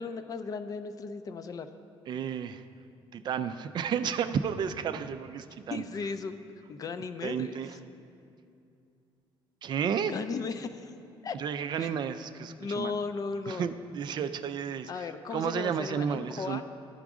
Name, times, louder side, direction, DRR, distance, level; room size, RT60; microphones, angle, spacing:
voice 1, 0.0-1.7 5.7-6.3 6.7-7.6 10.0-10.9 11.2-11.4 11.8-11.9 12.6-13.7 14.9-16.6, left 4 dB, 40° left, 10 dB, 0.4 m, -36 dB
voice 2, 2.1-2.6 3.1-5.8 7.2-7.8 9.6-10.1 11.3-12.9 13.5-16.6, right 7 dB, 50° right, 10 dB, 0.3 m, -32 dB
13.5 x 4.9 x 3.6 m, 2.6 s
cardioid pair, 125°, 10 cm